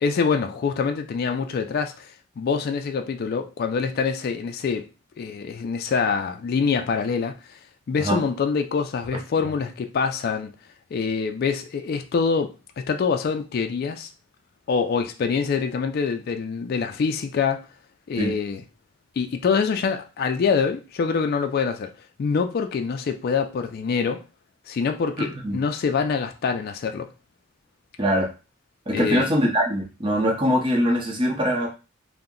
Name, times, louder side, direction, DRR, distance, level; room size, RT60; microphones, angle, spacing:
voice 1, 0.0-4.9 5.2-7.6 7.9-10.5 10.9-14.1 14.7-17.6 18.1-18.6 19.2-21.9 22.2-24.2 24.7-27.1 28.9-29.3, left 5 dB, 50° left, 0.3 m, -25 dB
voice 2, 25.2-25.6 28.0-28.3 28.9-31.7, equal, 25° right, 0.7 m, -22 dB
2.7 x 2.1 x 3.7 m
head